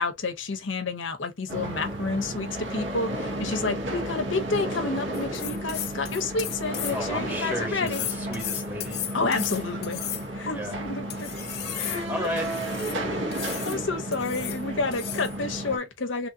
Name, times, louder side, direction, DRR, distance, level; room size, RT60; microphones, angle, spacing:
voice 1, 0.0-8.0 9.1-10.0 10.3-11.3 11.8-12.1 13.1-16.3, left 3 dB, 90° left, 0.9 m, -30 dB
sound 1, 1.5-15.8, right 1 dB, 70° right, 1.0 m, -33 dB
sound 2, 5.1-7.2 7.9-10.5 11.1-13.0 13.3-13.8 14.1-14.6 14.9-15.4, left 12 dB, 55° left, 0.5 m, -35 dB
voice 2, 6.9-9.0 10.5-10.8 12.1-12.5, left 1 dB, 10° right, 1.4 m, -33 dB
3.3 x 2.7 x 2.3 m
head